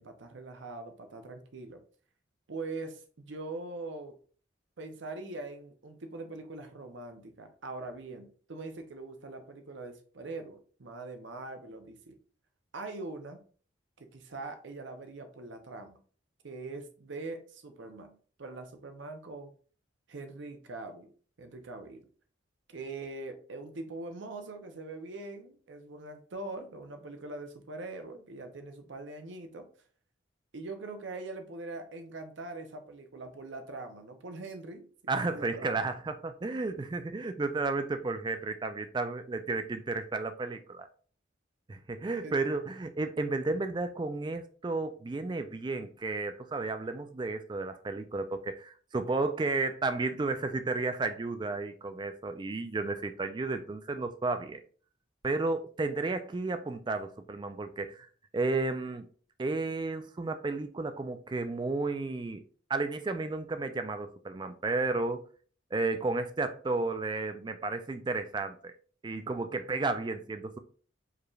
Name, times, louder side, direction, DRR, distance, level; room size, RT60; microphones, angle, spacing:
voice 1, 0.0-1.8 2.5-4.2 4.8-12.1 12.7-13.4 14.0-16.0 16.4-19.5 20.1-21.1 21.4-22.1 22.7-29.7 30.5-35.8 42.2-42.4, right 2 dB, 65° right, 0.6 m, -42 dB
voice 2, 35.1-40.9 41.7-54.6 55.2-58.1 58.3-59.1 59.4-62.4 62.7-65.3 65.7-68.7 69.0-70.6, right 3 dB, 25° right, 0.3 m, -32 dB
4.8 x 3.1 x 2.3 m
head